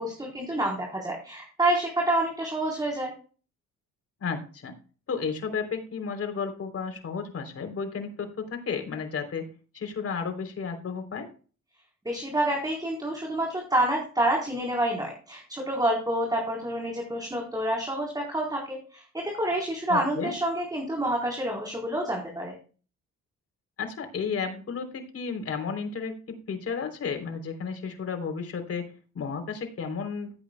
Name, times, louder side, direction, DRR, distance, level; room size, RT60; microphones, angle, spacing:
voice 1, 0.0-3.1 12.0-22.5, right 1 dB, 15° right, -1 dB, 4.0 m, -28 dB
voice 2, 4.2-4.7 5.1-9.5 9.7-11.3 19.9-20.3 23.8-30.3, left 5 dB, 50° left, 5 dB, 3.5 m, -33 dB
16.0 x 8.7 x 2.3 m, 0.38 s
cardioid pair, 90°, 30 cm